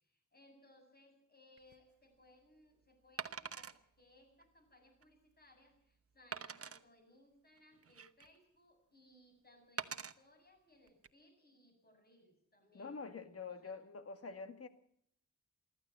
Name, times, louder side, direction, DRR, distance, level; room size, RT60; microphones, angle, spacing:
voice 1, 0.0-13.0 13.5-13.8, left 1 dB, 30° left, 3 dB, 7.9 m, -66 dB
Wood, 1.6-1.7 3.2-3.8 4.4-4.5 5.0-5.1 6.3-6.8 7.6-8.4 9.8-10.1 10.9-11.1, right 6 dB, 50° right, 1.0 m, -44 dB
voice 2, 12.7-14.7, left 4 dB, 50° left, 9 dB, 1.9 m, -46 dB
24.5 x 14.0 x 7.5 m, 0.70 s
wide cardioid pair, 165°, 30 cm